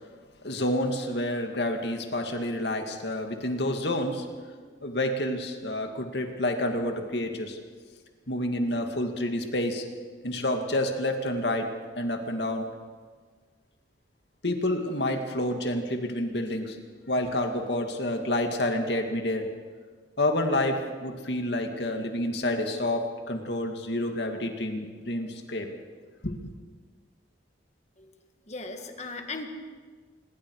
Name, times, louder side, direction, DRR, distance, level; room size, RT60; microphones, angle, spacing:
voice 1, 0.4-4.3 4.8-7.6 8.3-9.8 10.2-11.7 12.0-12.7 14.4-16.8 17.1-19.4 20.2-25.7 26.2-26.4, left 1 dB, 65° left, 4 dB, 2.4 m, -29 dB
voice 2, 28.4-29.5, left 3 dB, 35° left, 5 dB, 2.0 m, -37 dB
26.5 x 21.0 x 4.9 m, 1.5 s
head